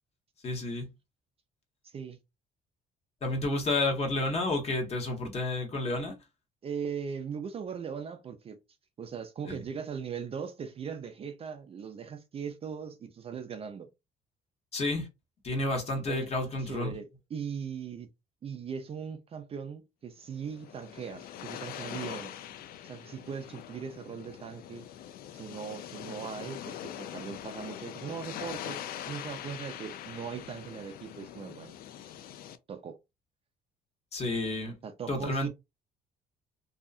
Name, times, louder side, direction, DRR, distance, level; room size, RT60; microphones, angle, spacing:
voice 1, 0.4-0.9 3.2-6.1 9.5-9.6 14.7-15.1 15.4-16.9 34.1-34.8 35.1-35.5, left 2 dB, 40° left, 1.1 m, -30 dB
voice 2, 1.8-2.2 6.6-8.6 9.0-13.9 16.1-16.3 16.6-18.1 18.4-22.4 22.8-24.9 25.3-31.7 32.7-33.0 34.8-35.5, right 7 dB, 35° right, 0.4 m, -39 dB
sound 1, 20.3-32.6, left 10 dB, 60° left, 0.4 m, -43 dB
2.7 x 2.3 x 2.4 m
cardioid pair, 110°, 17 cm